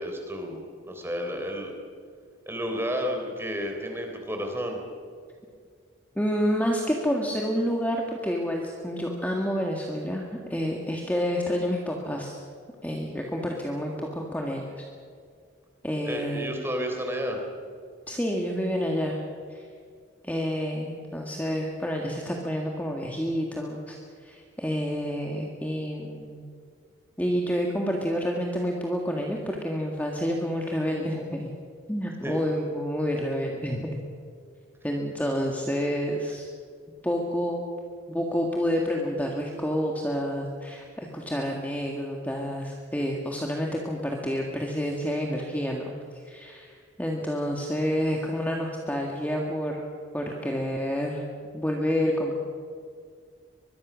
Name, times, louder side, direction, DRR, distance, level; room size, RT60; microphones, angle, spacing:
voice 1, 0.0-1.7 2.5-4.8 16.1-17.4 32.2-32.4, equal, 10° right, 3 dB, 3.7 m, -31 dB
voice 2, 6.2-12.4 12.8-14.9 15.8-16.5 18.1-19.2 19.5-19.6 20.2-24.0 24.2-26.4 27.2-31.5 31.9-34.0 34.8-36.5 37.0-37.6 38.1-49.9 50.1-51.2 51.5-52.4, equal, 10° left, 0 dB, 1.8 m, -29 dB
23.5 x 22.0 x 6.3 m, 2.2 s
head